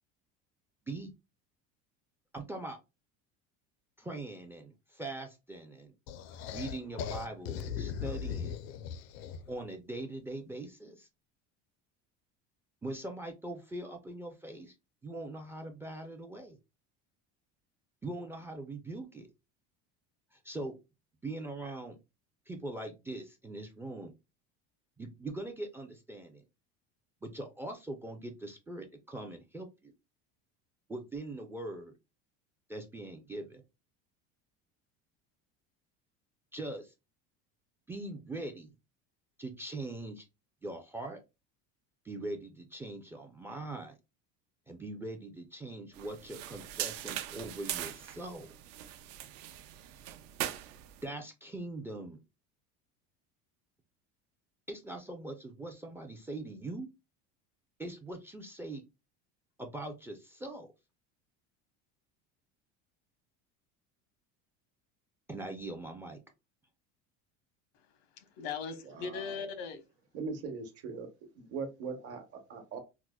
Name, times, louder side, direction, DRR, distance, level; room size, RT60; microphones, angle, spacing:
voice 1, 2.3-2.8 4.0-5.9 6.5-8.6 9.5-11.1 12.8-14.7 15.0-16.6 18.0-19.3 20.3-20.7 21.2-22.0 22.5-24.1 25.0-26.4 27.2-29.9 30.9-31.9 32.7-33.6 36.5-36.9 37.9-38.7 39.4-40.2 40.6-41.2 42.0-44.0 44.7-48.5 51.0-52.2 54.7-56.9 57.8-58.8 59.6-60.7 65.3-66.2, right 2 dB, 10° right, 0.3 m, -41 dB
sound 1, 6.1-9.6, left 7 dB, 60° left, 0.4 m, -39 dB
sound 2, 46.0-51.0, right 12 dB, 70° right, 0.5 m, -40 dB
voice 2, 67.7-69.8, left 6 dB, 90° left, 0.9 m, -40 dB
voice 3, 69.0-69.3 70.1-71.1 71.4-72.8, right 4 dB, 50° right, 1.0 m, -40 dB
4.6 x 2.0 x 2.2 m
cardioid pair, 145°, 30 cm